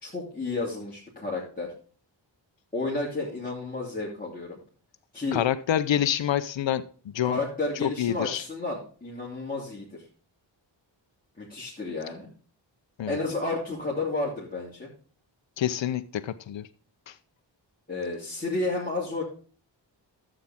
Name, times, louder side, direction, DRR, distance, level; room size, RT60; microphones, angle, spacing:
voice 1, 0.0-1.7 2.7-4.6 5.1-5.4 7.2-10.0 11.4-12.3 13.1-14.9 17.9-19.2, left 3 dB, 20° left, -6 dB, 3.0 m, -31 dB
voice 2, 5.3-7.4 7.8-8.4 13.0-13.2 15.6-16.7 17.1-17.2, left 10 dB, 70° left, 12 dB, 0.7 m, -27 dB
11.5 x 7.3 x 3.6 m, 0.41 s
wide cardioid pair, 65°, 46 cm